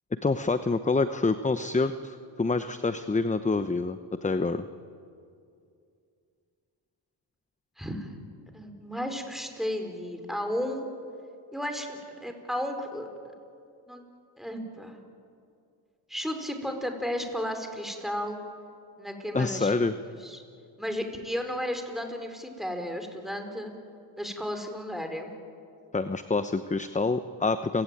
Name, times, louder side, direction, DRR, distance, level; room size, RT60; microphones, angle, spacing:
voice 1, 0.1-4.6 19.3-19.9 25.9-27.8, left 3 dB, 15° left, 11 dB, 0.9 m, -27 dB
voice 2, 7.8-8.1 8.5-10.9 11.5-13.1 13.9-14.0 14.4-15.0 16.1-18.4 19.0-19.7 20.1-20.4 20.8-23.7 24.2-25.3, equal, ahead, 5 dB, 4.8 m, -33 dB
30.0 x 17.0 x 9.2 m, 2.4 s
supercardioid pair, 70°, 49 cm